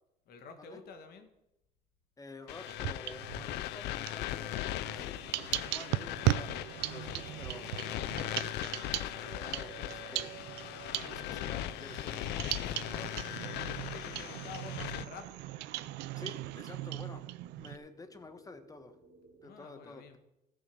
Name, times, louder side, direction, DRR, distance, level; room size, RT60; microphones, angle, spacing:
voice 1, 0.3-1.3 10.8-11.3 13.5-15.3 19.4-20.2, left 5 dB, 65° left, 7 dB, 1.8 m, -50 dB
voice 2, 2.2-5.2 5.7-6.6 6.9-7.7 8.0-10.4 11.0-13.3 14.1-14.3 16.2-17.3 17.6-19.0 19.4-20.2, left 3 dB, 20° left, 10 dB, 1.2 m, -50 dB
sound 1, 2.5-15.1, left 14 dB, 85° left, 0.5 m, -39 dB
sound 2, 2.7-3.6 4.0-17.8, right 16 dB, 90° right, 0.5 m, -38 dB
sound 3, 11.1-19.5, right 2 dB, 45° right, 3.9 m, -63 dB
14.5 x 6.3 x 6.2 m, 0.89 s
cardioid pair, 110°, 17 cm